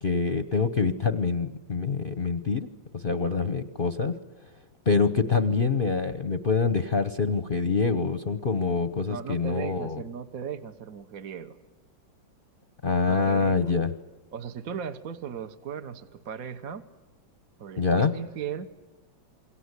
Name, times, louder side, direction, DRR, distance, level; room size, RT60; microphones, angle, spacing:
voice 1, 0.0-2.7 2.9-4.2 4.9-10.0 12.8-13.9 17.8-18.1, left 4 dB, 40° left, 11 dB, 0.9 m, -25 dB
voice 2, 9.1-11.6 13.1-13.7 14.3-16.9 17.6-18.7, right 7 dB, 50° right, 9 dB, 1.4 m, -37 dB
28.0 x 23.0 x 8.2 m, 1.1 s
omnidirectional pair, 2.1 m